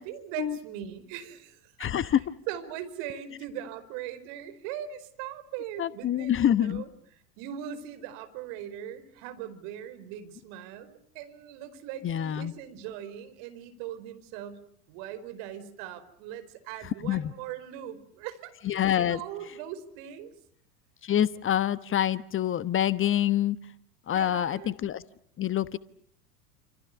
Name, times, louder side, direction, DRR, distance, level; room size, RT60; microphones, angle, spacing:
voice 1, 0.0-2.2 2.5-6.9 7.4-14.6 14.9-20.3 24.1-24.7, right 10 dB, 55° right, 10 dB, 4.8 m, -40 dB
voice 2, 1.8-2.2 5.8-6.8 12.0-12.5 17.0-17.3 18.6-19.2 21.0-23.6 24.1-25.0 25.4-25.8, left 11 dB, 25° left, 15 dB, 1.2 m, -26 dB
29.0 x 28.5 x 6.8 m, 0.63 s
figure-of-eight pair, 85°, 45 cm